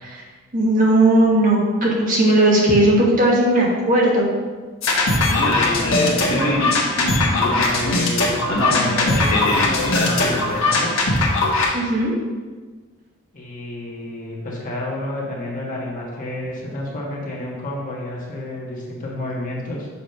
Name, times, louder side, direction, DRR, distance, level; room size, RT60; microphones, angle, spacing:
voice 1, 0.5-4.3 11.7-12.1, right 1 dB, 40° right, -3 dB, 1.2 m, -16 dB
sound 1, 4.8-11.7, left 2 dB, 65° left, 1.3 m, -19 dB
voice 2, 5.6-6.8 7.4-11.1 13.3-19.9, left 1 dB, 35° left, -4 dB, 1.3 m, -30 dB
7.0 x 3.1 x 5.3 m, 1.4 s
head